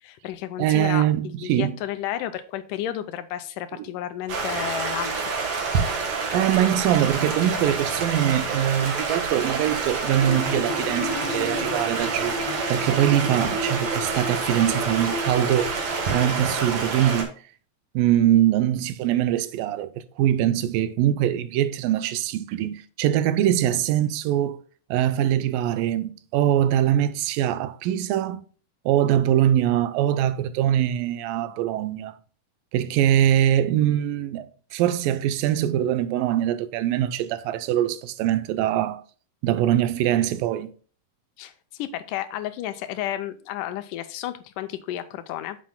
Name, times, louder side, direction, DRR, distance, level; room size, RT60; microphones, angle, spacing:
voice 1, 0.0-5.3 13.4-13.7 41.4-45.6, left 12 dB, 80° left, 2.0 m, -32 dB
voice 2, 0.6-1.7 6.3-12.4 12.7-17.3 18.0-24.6 24.9-28.4 28.9-32.2 32.7-39.0 39.4-40.7, right 11 dB, 90° right, 2.3 m, -23 dB
Stream, 4.3-17.2, right 4 dB, 50° right, 1.9 m, -28 dB
sound 1, 10.2-16.4, left 2 dB, 65° left, 1.9 m, -33 dB
9.3 x 7.3 x 2.2 m
omnidirectional pair, 4.0 m